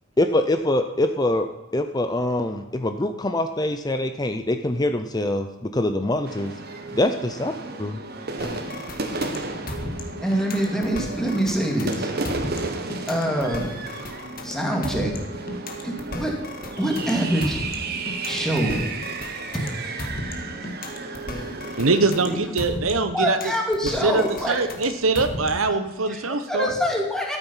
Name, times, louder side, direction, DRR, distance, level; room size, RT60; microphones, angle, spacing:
voice 1, 0.2-1.5 1.7-6.5 6.9-7.5 7.8-8.0, left 1 dB, 20° left, 8 dB, 0.6 m, -24 dB
sound 1, 6.2-22.1, right 3 dB, 50° right, 1.4 m, -33 dB
sound 2, 8.4-25.8, left 1 dB, 45° left, 1.8 m, -35 dB
voice 2, 10.2-12.1 13.1-13.8 14.4-15.1 15.8-16.4 16.8-17.6 18.2-18.8 19.5-19.7 22.2-22.4 23.1-24.6 25.6-25.8 26.1-27.4, equal, 5° left, 0 dB, 2.3 m, -25 dB
voice 3, 21.7-23.4 24.0-26.7, right 3 dB, 85° right, 9 dB, 1.1 m, -23 dB
14.0 x 8.9 x 5.7 m, 1.0 s
head